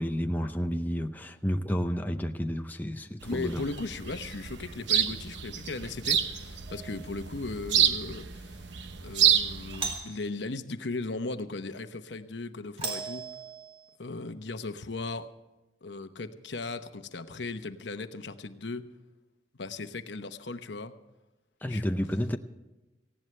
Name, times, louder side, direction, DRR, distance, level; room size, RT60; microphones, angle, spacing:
voice 1, 0.0-3.7 21.6-22.4, equal, 10° left, 0.6 m, -31 dB
voice 2, 3.2-8.6 9.0-13.3 14.0-15.3 15.8-18.9 19.6-20.9 21.7-21.9, left 3 dB, 65° left, 1.0 m, -37 dB
sound 1, 3.2-10.0, right 9 dB, 70° right, 1.0 m, -29 dB
Doorbell, 6.7-7.1 9.7-10.3 12.8-13.9, right 4 dB, 30° right, 2.4 m, -37 dB
18.5 x 16.5 x 3.3 m
head